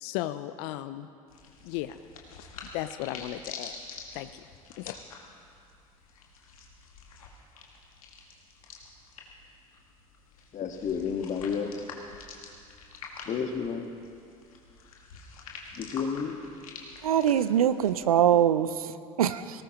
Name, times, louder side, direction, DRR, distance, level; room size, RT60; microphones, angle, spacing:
voice 1, 0.0-1.1 1.6-2.0 2.4-2.5 2.7-3.8 4.1-4.5 4.8-5.0, left 14 dB, 65° left, 11 dB, 0.5 m, -35 dB
sound 1, 1.3-18.4, left 4 dB, 80° left, 1.8 m, -47 dB
voice 2, 10.5-11.8 13.3-13.9 15.8-16.4, left 6 dB, 45° left, 5 dB, 1.6 m, -31 dB
voice 3, 17.0-19.6, right 10 dB, 85° right, 13 dB, 0.5 m, -23 dB
19.5 x 18.0 x 3.0 m, 2.4 s
hypercardioid pair, 65°, 18 cm